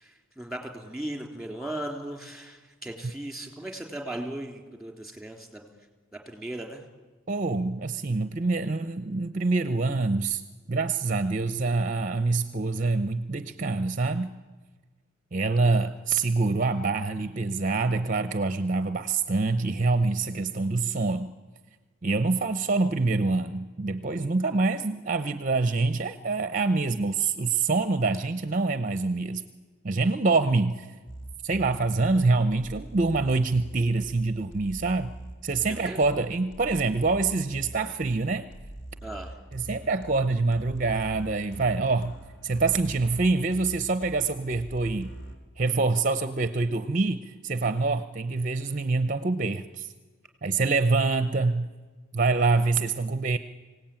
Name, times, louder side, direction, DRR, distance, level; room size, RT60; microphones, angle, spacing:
voice 1, 0.0-5.7 6.3-6.8 15.6-15.9 35.7-36.0 39.0-39.3, right 1 dB, ahead, 4 dB, 3.2 m, -37 dB
voice 2, 7.3-10.4 10.7-14.3 15.3-21.3 22.0-29.4 29.8-30.9 31.4-35.1 35.4-38.5 39.5-42.2 42.4-45.1 45.6-49.9 50.4-51.7 52.1-53.4, right 3 dB, 40° right, 11 dB, 0.7 m, -25 dB
sound 1, 31.1-45.4, right 1 dB, 60° left, 3.6 m, -43 dB
25.0 x 17.5 x 9.0 m, 1.3 s
head